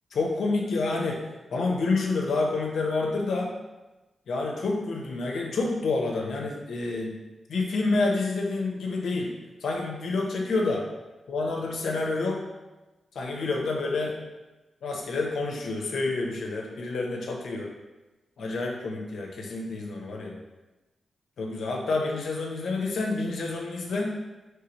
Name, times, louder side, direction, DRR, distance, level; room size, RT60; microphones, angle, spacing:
voice 1, 0.1-1.2 1.5-3.5 4.3-7.1 7.5-9.3 9.6-10.8 11.3-12.4 13.1-14.1 14.8-17.7 18.4-20.4 21.4-24.1, left 3 dB, 80° left, 0 dB, 0.8 m, -28 dB
4.8 x 3.2 x 3.0 m, 1.1 s
cardioid pair, 70°, 0 cm